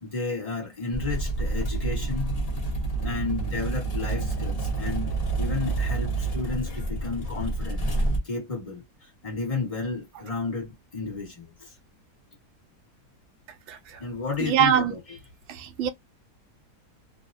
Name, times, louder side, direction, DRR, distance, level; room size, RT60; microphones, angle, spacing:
voice 1, 0.0-2.3 3.0-7.8 8.2-8.8 9.2-11.7 14.0-15.2, left 4 dB, 25° left, 1.0 m, -32 dB
sound 1, 0.9-8.2, right 3 dB, 70° left, 0.3 m, -28 dB
voice 2, 13.7-14.0 14.4-15.0 15.5-15.9, right 9 dB, 75° right, 0.6 m, -24 dB
2.7 x 2.0 x 2.5 m
omnidirectional pair, 1.7 m